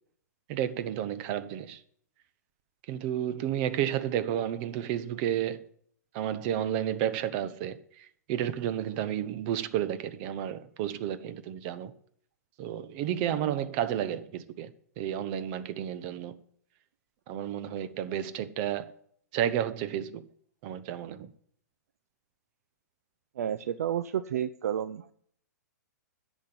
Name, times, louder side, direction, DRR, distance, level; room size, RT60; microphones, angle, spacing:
voice 1, 0.5-1.8 2.9-5.6 6.1-11.9 12.6-16.4 17.3-18.9 19.3-20.2 20.6-21.3, right 10 dB, 40° right, 0.9 m, -31 dB
voice 2, 23.3-25.1, right 10 dB, 60° right, 0.5 m, -31 dB
10.5 x 7.3 x 7.6 m
figure-of-eight pair, 115°, 9 cm